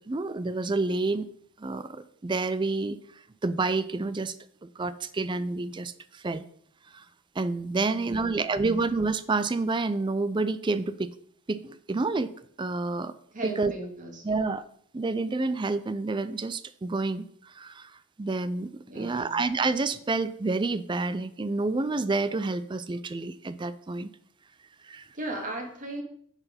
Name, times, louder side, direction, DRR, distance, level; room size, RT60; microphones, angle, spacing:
voice 1, 0.1-1.3 1.6-3.0 3.4-4.3 4.6-6.4 6.9-7.0 7.4-11.1 11.5-12.3 12.6-13.1 13.4-13.7 14.2-14.6 14.9-17.9 18.2-24.1 24.8-25.1, right 3 dB, 20° right, 14 dB, 0.4 m, -29 dB
voice 2, 7.8-8.8 13.3-14.2 18.9-19.4 25.1-26.0, right 2 dB, 35° right, 1 dB, 1.9 m, -37 dB
9.6 x 4.9 x 5.1 m, 0.63 s
head